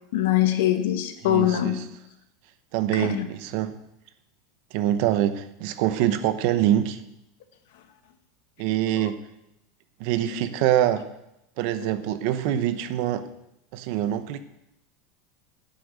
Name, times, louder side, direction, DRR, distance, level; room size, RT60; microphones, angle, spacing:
voice 1, 0.1-1.8 2.9-3.2 8.9-9.0 10.2-10.3, left 13 dB, 70° left, 8 dB, 1.4 m, -23 dB
voice 2, 1.2-1.8 2.7-3.8 4.7-7.0 8.6-9.2 10.0-11.1 11.6-13.3 13.7-14.4, right 12 dB, 50° right, 11 dB, 0.8 m, -24 dB
11.0 x 6.5 x 8.1 m, 0.86 s
supercardioid pair, 170°, 0 cm